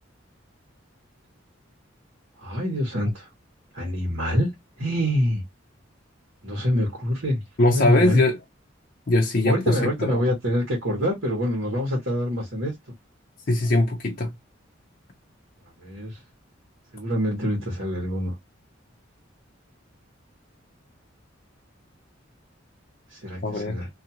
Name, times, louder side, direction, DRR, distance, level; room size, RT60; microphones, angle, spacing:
voice 1, 2.4-3.3 3.7-4.5 4.8-5.4 6.4-8.2 9.4-12.7 15.8-16.2 16.9-18.3 23.1-23.9, equal, 75° right, 1.4 m, -26 dB
voice 2, 7.6-8.4 9.1-9.8 10.1-10.2 13.5-14.3 23.4-23.8, left 1 dB, 50° left, 0.6 m, -21 dB
2.7 x 2.5 x 2.8 m
head